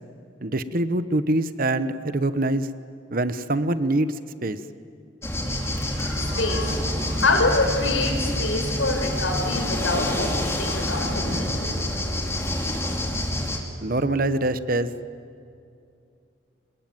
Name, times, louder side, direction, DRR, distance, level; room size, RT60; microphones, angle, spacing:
voice 1, 0.4-2.7 3.1-4.6 13.8-14.9, right 2 dB, 45° right, 13 dB, 1.0 m, -24 dB
sound 1, 5.2-13.6, left 1 dB, 15° left, 2.8 m, -27 dB
voice 2, 5.5-11.7, left 2 dB, 90° left, 4 dB, 5.2 m, -26 dB
26.5 x 21.5 x 9.3 m, 2.5 s
head